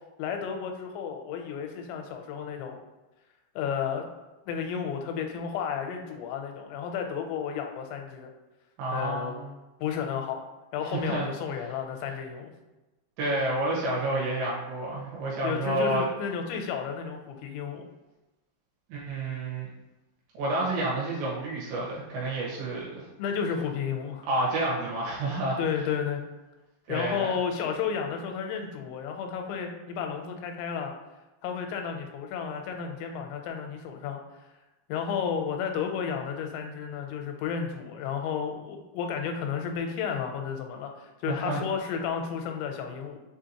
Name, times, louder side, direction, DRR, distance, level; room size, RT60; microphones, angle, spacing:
voice 1, 0.2-2.8 3.6-4.0 4.5-8.3 8.9-9.3 9.8-10.5 10.7-12.5 15.4-17.9 23.2-24.3 25.6-26.2 26.9-30.9 31.4-34.2 34.9-43.2, left 7 dB, 85° left, 4 dB, 2.9 m, -32 dB
voice 2, 8.8-9.4 10.9-11.3 13.2-16.1 18.9-19.7 20.4-23.1 24.3-25.6 26.9-27.3 41.3-41.6, right 1 dB, 80° right, -5 dB, 3.5 m, -29 dB
6.9 x 2.7 x 2.8 m, 1.1 s
omnidirectional pair, 5.0 m